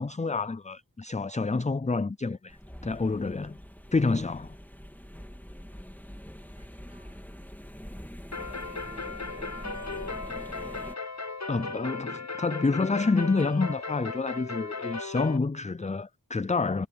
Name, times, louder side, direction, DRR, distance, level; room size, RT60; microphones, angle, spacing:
voice 1, 0.0-2.6 2.8-3.6 3.9-4.5 11.5-16.9, left 3 dB, 20° left, 0.5 m, -28 dB
voice 2, 0.9-1.4 3.8-4.2 6.2-7.3 8.5-9.8, right 1 dB, 15° right, 6.7 m, -63 dB
sound 1, 2.5-10.9, equal, 5° left, 3.1 m, -44 dB
sound 2, 8.3-15.4, left 3 dB, 50° left, 1.4 m, -36 dB
wide cardioid pair, 45°, 36 cm